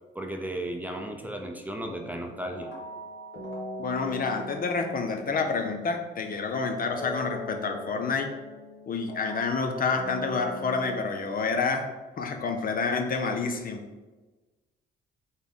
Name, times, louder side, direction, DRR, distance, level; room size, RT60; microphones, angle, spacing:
voice 1, 0.1-2.7, right 1 dB, 10° right, 3 dB, 0.6 m, -35 dB
sound 1, 1.8-6.4 6.9-11.0, left 1 dB, 75° left, 1.5 m, -40 dB
voice 2, 3.8-8.3 8.9-11.9 12.2-13.8, left 4 dB, 45° left, 5 dB, 0.6 m, -28 dB
4.1 x 3.5 x 3.7 m, 1.2 s
cardioid pair, 90°, 20 cm